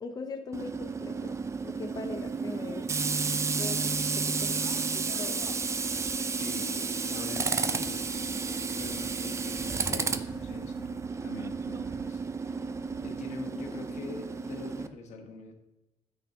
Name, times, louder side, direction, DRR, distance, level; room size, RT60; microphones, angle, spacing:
voice 1, 0.0-2.9 3.6-3.8 4.1-4.6 5.1-5.6, left 4 dB, 30° left, 4 dB, 0.6 m, -40 dB
Tools, 0.5-14.9, right 4 dB, 25° right, 0.4 m, -32 dB
voice 2, 6.3-12.2 12.6-12.7 13.0-15.5, left 4 dB, 70° left, 2 dB, 1.1 m, -43 dB
9.2 x 4.2 x 2.8 m, 0.98 s
cardioid pair, 105°, 12 cm